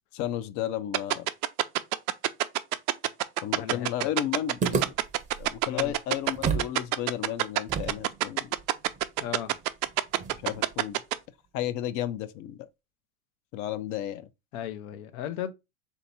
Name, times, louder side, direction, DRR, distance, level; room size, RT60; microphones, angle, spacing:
voice 1, 0.1-1.3 3.4-4.9 5.4-8.5 10.4-11.0 11.5-12.7 13.5-14.3, left 12 dB, 45° left, 0.4 m, -33 dB
sound 1, 0.9-11.1, right 16 dB, 80° right, 0.6 m, -25 dB
voice 2, 3.6-4.1 5.7-5.9 9.2-9.5 14.5-15.5, left 10 dB, 75° left, 0.8 m, -36 dB
sound 2, 4.6-6.8 7.0-7.1 7.7-10.8, right 6 dB, 15° right, 0.6 m, -34 dB
3.4 x 2.9 x 4.0 m
supercardioid pair, 115°, 43 cm